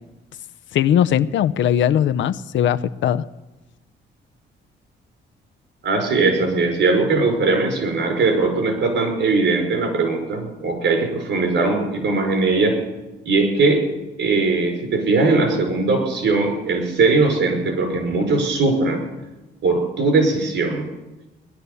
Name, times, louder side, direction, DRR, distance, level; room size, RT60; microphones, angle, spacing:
voice 1, 0.7-3.2, left 10 dB, 70° left, 12 dB, 0.7 m, -19 dB
voice 2, 5.8-12.8 13.3-13.8 14.2-19.0 19.6-20.9, right 3 dB, 70° right, 3 dB, 5.5 m, -20 dB
18.0 x 11.0 x 6.9 m, 1.1 s
cardioid pair, 90°, 20 cm